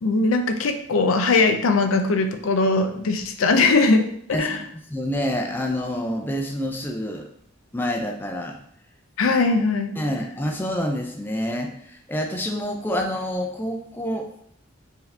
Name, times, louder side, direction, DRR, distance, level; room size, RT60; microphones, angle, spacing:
voice 1, 0.0-4.6 9.2-9.9, left 3 dB, 80° left, 7 dB, 0.5 m, -20 dB
voice 2, 4.3-7.3 7.7-8.6 10.0-14.3, equal, 10° left, 2 dB, 0.4 m, -27 dB
4.7 x 2.7 x 3.3 m, 0.68 s
head